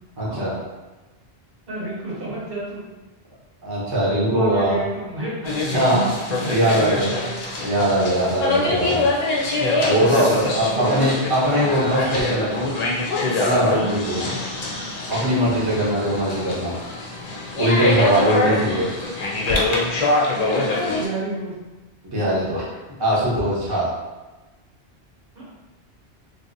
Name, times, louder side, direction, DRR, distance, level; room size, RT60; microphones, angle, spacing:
voice 1, 0.2-0.5 3.6-4.8 5.7-6.0 6.5-7.1 7.6-9.1 9.8-12.6 13.4-14.2 15.1-16.8 17.5-18.8 22.1-22.6 23.0-23.9, right 1 dB, 25° right, -7 dB, 0.8 m, -21 dB
voice 2, 1.7-2.8 4.3-5.6 6.4-7.6 10.1-10.2 10.7-11.2 14.1-14.4 18.4-19.0 20.3-21.5 22.2-22.3, right 2 dB, 60° right, -7 dB, 1.2 m, -30 dB
sound 1, 5.4-21.1, left 2 dB, 50° left, 0.5 m, -24 dB
3.1 x 2.7 x 2.6 m, 1.1 s
omnidirectional pair, 1.1 m